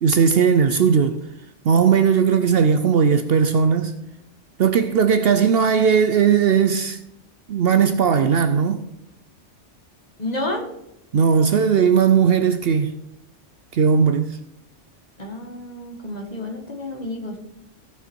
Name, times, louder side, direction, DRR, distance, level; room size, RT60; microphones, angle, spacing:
voice 1, 0.0-1.2 1.6-4.0 4.6-7.0 7.5-8.8 11.1-12.9 13.7-14.4, right 6 dB, 60° right, 0.7 m, -17 dB
voice 2, 10.2-10.7 15.2-17.4, left 1 dB, 35° left, 1.7 m, -30 dB
15.0 x 5.8 x 4.5 m
omnidirectional pair, 1.2 m